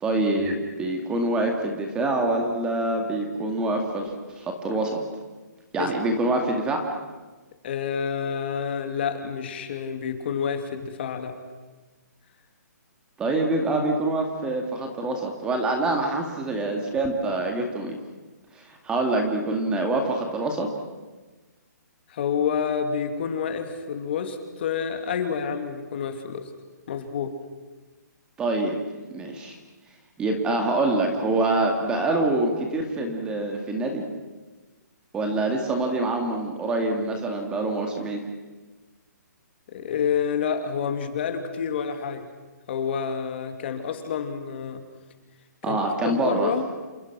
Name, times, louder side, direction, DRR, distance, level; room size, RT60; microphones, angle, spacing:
voice 1, 0.0-5.0 5.7-6.9 13.2-17.9 18.5-20.7 28.4-28.8 29.1-29.6 30.2-34.0 35.1-38.2 45.6-46.5, right 2 dB, 10° right, 3 dB, 2.1 m, -25 dB
voice 2, 7.6-11.4 22.1-26.4 26.9-27.4 39.7-42.3 42.7-44.8 45.6-46.7, left 7 dB, 35° left, 7 dB, 2.8 m, -28 dB
28.5 x 27.5 x 6.1 m, 1.2 s
hypercardioid pair, 170°, 10 cm